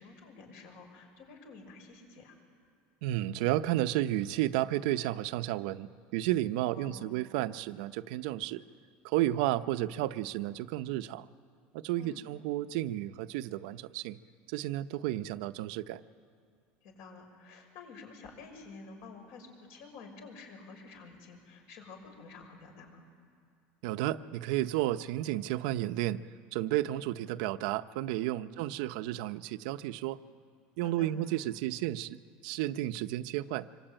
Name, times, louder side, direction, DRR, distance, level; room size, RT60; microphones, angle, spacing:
voice 1, 0.0-2.4 6.7-7.2 12.0-12.2 16.8-23.0 28.3-28.5 30.8-31.2, left 4 dB, 60° left, 4 dB, 6.1 m, -50 dB
voice 2, 3.0-8.6 9.0-11.3 11.7-14.2 14.5-16.0 23.8-26.2 26.5-30.2 30.8-33.7, right 14 dB, 75° right, 11 dB, 0.8 m, -32 dB
25.5 x 25.0 x 9.0 m, 2.4 s
cardioid pair, 155°, 4 cm